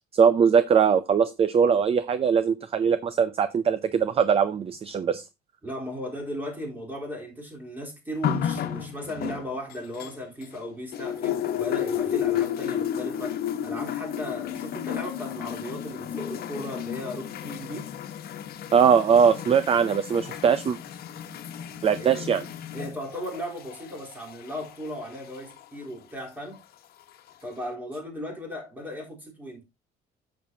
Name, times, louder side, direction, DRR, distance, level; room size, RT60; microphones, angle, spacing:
voice 1, 0.1-5.2 18.7-20.8 21.8-22.4, right 7 dB, 35° right, 0.6 m, -21 dB
voice 2, 5.6-17.9 21.7-22.3 22.7-26.6 27.4-29.6, equal, 10° right, 3.8 m, -36 dB
sound 1, 8.2-10.6 10.9-25.6 26.5-26.6, left 10 dB, 65° left, 1.2 m, -32 dB
9.3 x 7.4 x 2.8 m
cardioid pair, 110°, 17 cm